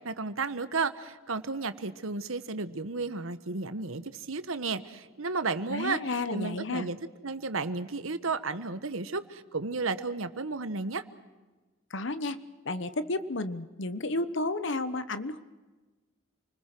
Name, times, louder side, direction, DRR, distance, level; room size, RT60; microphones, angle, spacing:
voice 1, 0.0-6.0 6.3-7.0 7.2-11.0, right 4 dB, 85° right, 12 dB, 1.3 m, -33 dB
voice 2, 5.7-6.9 11.9-12.4 12.6-15.4, left 2 dB, 60° left, 13 dB, 1.1 m, -32 dB
28.5 x 20.5 x 6.1 m, 1.2 s
head